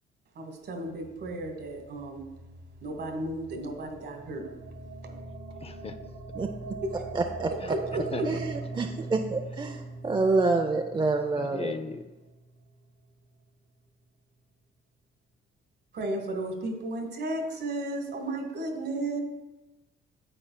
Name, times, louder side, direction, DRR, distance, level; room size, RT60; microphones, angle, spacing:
voice 1, 0.4-2.3 2.8-4.5 6.9-7.0 7.7-8.3 15.9-19.2, right 2 dB, 60° right, 5 dB, 1.3 m, -34 dB
sound 1, 0.6-12.9, right 3 dB, 75° right, 1.1 m, -42 dB
voice 2, 5.5-6.0 7.6-7.7 8.1-8.4 11.4-12.0, left 5 dB, 30° left, 9 dB, 0.5 m, -38 dB
voice 3, 7.1-7.5 8.3-11.7, right 3 dB, 20° right, 4 dB, 0.5 m, -27 dB
9.3 x 7.5 x 2.2 m, 1.1 s
cardioid pair, 90°, 20 cm